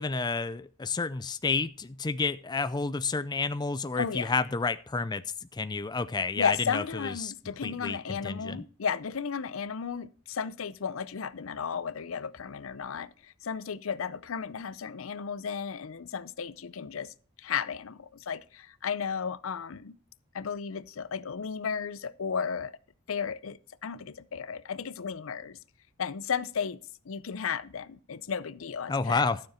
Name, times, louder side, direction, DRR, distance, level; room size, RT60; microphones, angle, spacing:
voice 1, 0.0-5.2 5.5-7.3 7.6-8.6 28.9-29.4, left 4 dB, 20° left, 0.4 m, -30 dB
voice 2, 4.0-4.3 6.4-20.0 20.3-22.7 23.1-25.6 26.0-26.8 27.1-29.3, left 6 dB, 70° left, 0.6 m, -34 dB
12.5 x 7.0 x 4.3 m
head